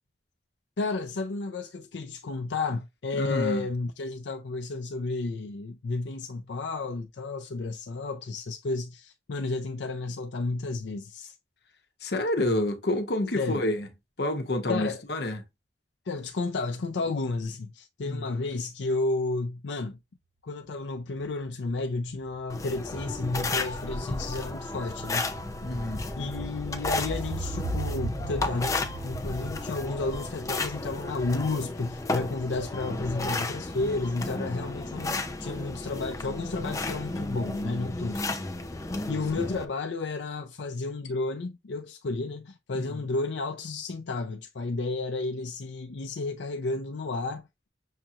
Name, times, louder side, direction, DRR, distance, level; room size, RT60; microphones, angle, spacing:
voice 1, 0.8-11.4 12.4-12.5 13.3-13.6 14.7-15.0 16.1-20.0 20.4-25.3 26.2-38.4 39.1-47.7, left 3 dB, 80° left, 0.5 m, -32 dB
voice 2, 3.2-3.7 12.0-13.9 14.2-15.4 18.0-18.2 25.6-26.1 39.4-39.5 42.7-42.9, left 1 dB, 60° left, 0.9 m, -28 dB
sound 1, 22.2-31.9 32.2-32.3, right 2 dB, 70° right, 3.0 m, -39 dB
sound 2, 22.5-39.6, left 2 dB, 20° left, 0.5 m, -33 dB
sound 3, 28.8-29.0 30.1-30.3 31.4-31.6 32.7-32.9 34.0-34.1, equal, 35° left, 1.5 m, -45 dB
6.5 x 2.9 x 2.4 m
head